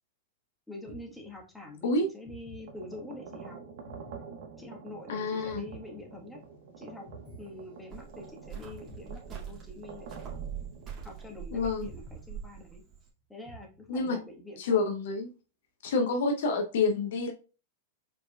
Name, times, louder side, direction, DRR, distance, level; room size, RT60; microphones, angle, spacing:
voice 1, 0.7-3.6 4.6-6.4 6.8-7.1 7.4-10.4 11.0-12.8 13.3-14.8, left 2 dB, 5° left, 0 dB, 1.4 m, -46 dB
sound 1, 0.9-1.7 2.2-3.3 3.9-5.0 5.5-6.6 7.1-8.2 8.6-9.7 10.2-11.4 11.9-13.0 13.5-14.3, right 1 dB, 25° left, 1.4 m, -51 dB
sound 2, 2.5-12.3, right 5 dB, 60° right, 0.9 m, -48 dB
voice 2, 5.1-5.6 11.5-11.9 13.9-14.2 14.6-15.3 15.8-17.3, left 3 dB, 65° left, 4 dB, 0.8 m, -28 dB
Cricket, 7.9-13.1, right 8 dB, 30° right, 2.1 m, -43 dB
4.7 x 4.3 x 2.3 m, 0.34 s
hypercardioid pair, 100°, 0 cm